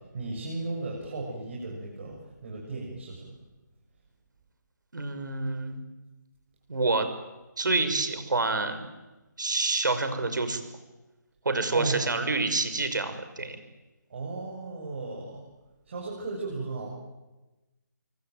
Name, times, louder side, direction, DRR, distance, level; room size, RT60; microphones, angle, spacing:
voice 1, 0.1-3.3 11.7-12.1 14.1-15.4 15.9-16.9, right 3 dB, 40° right, -2 dB, 7.0 m, -35 dB
voice 2, 4.9-5.8 6.7-7.1 7.6-8.8 9.4-10.6 11.4-13.6, right 3 dB, 75° right, 9 dB, 6.0 m, -27 dB
26.0 x 24.0 x 9.2 m, 1.1 s
hypercardioid pair, 170°, 10 cm